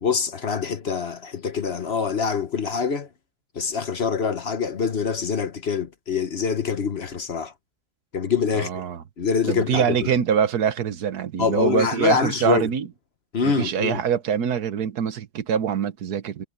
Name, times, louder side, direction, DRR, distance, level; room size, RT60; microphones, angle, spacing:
voice 1, 0.0-3.1 3.5-7.5 8.1-8.8 9.2-10.1 11.4-12.7 13.3-14.0, left 5 dB, 45° left, 1.2 m, -25 dB
voice 2, 8.6-9.0 9.5-12.9 13.4-16.5, right 8 dB, 90° right, 1.6 m, -24 dB
omnidirectional pair, 1.6 m